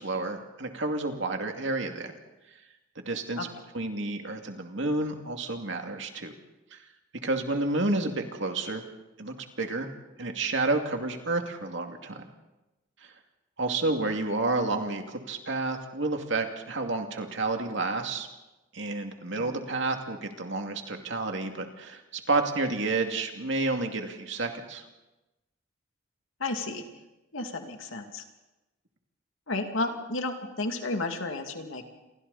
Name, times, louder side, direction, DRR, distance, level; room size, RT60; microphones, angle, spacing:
voice 1, 0.0-2.1 3.0-3.5 3.7-6.3 6.7-6.8 7.2-8.8 9.2-9.9 10.2-12.2 13.0-13.1 13.6-18.3 18.7-22.0 22.3-24.8, right 2 dB, 65° right, 4 dB, 2.5 m, -30 dB
voice 2, 26.4-26.8 27.3-28.2 29.5-31.8, left 2 dB, 80° left, 4 dB, 2.5 m, -32 dB
28.5 x 24.0 x 4.2 m, 1.0 s
head